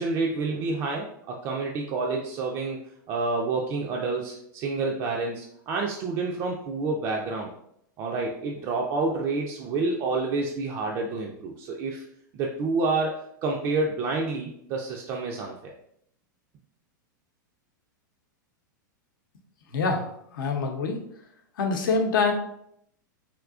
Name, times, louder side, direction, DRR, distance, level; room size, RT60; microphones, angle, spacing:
voice 1, 0.0-2.8 3.1-7.5 8.0-12.0 12.3-15.7, right 3 dB, 35° right, 0 dB, 0.4 m, -28 dB
voice 2, 19.7-20.1 20.3-21.0 21.6-22.3, left 4 dB, 80° left, 3 dB, 0.7 m, -25 dB
3.6 x 2.6 x 2.4 m, 0.72 s
supercardioid pair, 135°, 11 cm